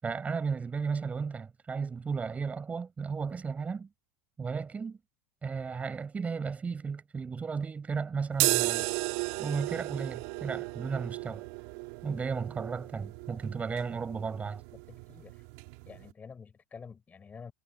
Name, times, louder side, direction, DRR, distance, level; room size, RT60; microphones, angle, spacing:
voice 1, 0.0-3.9 4.4-5.0 5.4-8.9 9.4-11.5 12.0-14.6, right 5 dB, 20° right, 5.8 m, -34 dB
sound 1, 8.3-16.1, right 30 dB, 60° right, 4.1 m, -35 dB
voice 2, 14.9-15.4 15.9-17.5, left 6 dB, 20° left, 6.7 m, -48 dB
hypercardioid pair, 115°, 8 cm